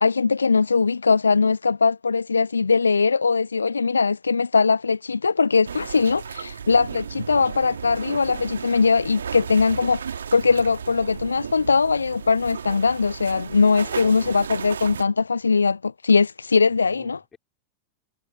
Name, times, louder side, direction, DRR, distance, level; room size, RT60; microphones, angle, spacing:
voice 1, 0.0-17.2, left 4 dB, 75° left, 0.4 m, -21 dB
sound 1, 5.6-15.0, right 7 dB, 70° right, 1.6 m, -35 dB
voice 2, 13.6-14.4 16.7-17.4, left 6 dB, 20° left, 4.5 m, -47 dB
figure-of-eight pair, 90°, 0 cm